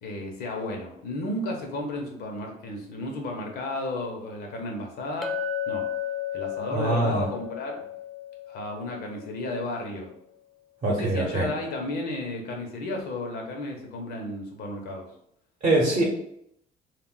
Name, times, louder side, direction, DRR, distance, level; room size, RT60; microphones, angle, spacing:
voice 1, 0.0-5.4 5.7-5.9 6.3-7.9 8.5-10.1 10.9-15.1, left 2 dB, 70° left, 2 dB, 0.8 m, -33 dB
Chink clink, 5.2-9.7, left 8 dB, ahead, 0.4 m, -34 dB
voice 2, 6.7-7.3 10.8-11.5 15.6-16.0, right 2 dB, 40° right, -4 dB, 0.8 m, -23 dB
2.4 x 2.1 x 3.7 m, 0.73 s
cardioid pair, 110°, 17 cm